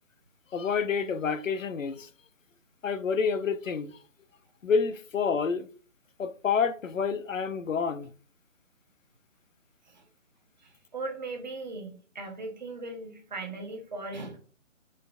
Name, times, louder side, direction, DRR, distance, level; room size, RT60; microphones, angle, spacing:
voice 1, 0.5-2.1 2.8-3.9 4.6-5.7 6.2-8.1, left 5 dB, 75° left, 0.7 m, -28 dB
voice 2, 10.6-14.4, right 3 dB, 35° right, 1.0 m, -38 dB
4.9 x 4.4 x 2.4 m
figure-of-eight pair, 165°, 39 cm